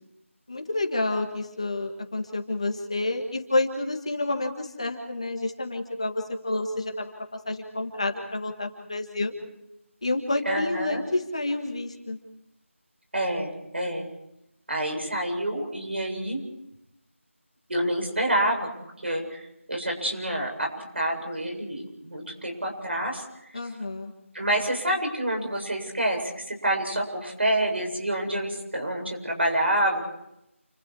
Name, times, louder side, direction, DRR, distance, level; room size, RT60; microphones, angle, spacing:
voice 1, 0.5-9.3 10.0-12.2 23.5-24.1, left 2 dB, 25° left, 4 dB, 1.7 m, -29 dB
voice 2, 10.5-11.0 13.1-14.1 14.7-16.4 17.7-18.7 19.0-23.2 23.5-23.6 24.3-30.0, right 1 dB, 55° right, 2 dB, 7.8 m, -28 dB
29.0 x 25.5 x 4.8 m, 0.84 s
figure-of-eight pair, 180°, 7 cm